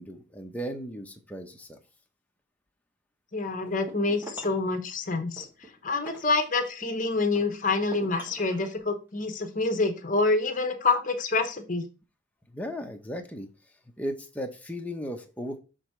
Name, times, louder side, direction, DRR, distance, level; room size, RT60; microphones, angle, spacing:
voice 1, 0.0-1.8 12.5-13.5 14.0-15.6, equal, 10° left, 3 dB, 0.9 m, -36 dB
voice 2, 3.3-5.5 5.8-11.9, left 3 dB, 40° left, 8 dB, 1.0 m, -27 dB
sound 1, 3.7-4.7 5.4-6.9 7.4-8.7, right 1 dB, 10° right, 1.5 m, -45 dB
7.0 x 3.6 x 4.5 m, 0.32 s
head